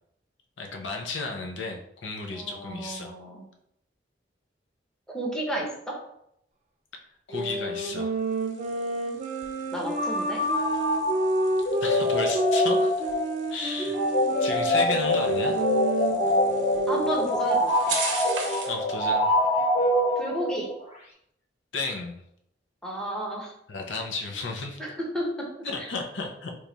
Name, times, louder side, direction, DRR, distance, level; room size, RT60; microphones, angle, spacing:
voice 1, 0.6-3.1 7.3-8.1 11.8-13.1 13.5-14.0 14.4-15.6 18.7-19.3 21.7-22.1 23.7-24.8 25.6-26.6, left 3 dB, 85° left, 2 dB, 0.6 m, -33 dB
voice 2, 2.3-3.4 5.1-6.0 9.7-10.4 14.6-14.7 16.9-18.0 20.2-20.7 22.8-23.5 24.8-25.5 25.8-25.9, right 1 dB, 5° left, -2 dB, 0.7 m, -32 dB
sound 1, 7.3-17.3, right 1 dB, 40° right, 0.5 m, -29 dB
sound 2, 8.1-18.8, right 4 dB, 85° right, 0.8 m, -40 dB
sound 3, 10.0-20.7, left 1 dB, 40° left, 0.9 m, -25 dB
3.0 x 2.3 x 3.9 m, 0.75 s
head